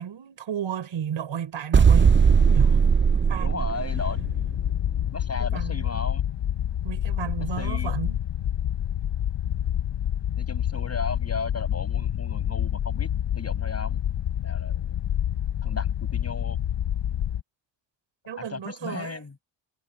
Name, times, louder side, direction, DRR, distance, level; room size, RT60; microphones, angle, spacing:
voice 1, 0.0-2.2 2.5-2.8 3.3-3.6 5.4-5.9 6.8-8.2 18.3-19.3, right 9 dB, 65° right, 6.1 m, -33 dB
sound 1, 1.7-4.5, right 6 dB, 25° right, 0.6 m, -18 dB
voice 2, 3.4-4.2 5.1-6.2 7.4-7.9 10.4-14.0 14.4-15.0 15.6-16.6 18.4-19.3, left 4 dB, 30° left, 7.7 m, -35 dB
sound 2, 3.9-17.4, left 10 dB, 55° left, 1.1 m, -28 dB
cardioid pair, 75°, 49 cm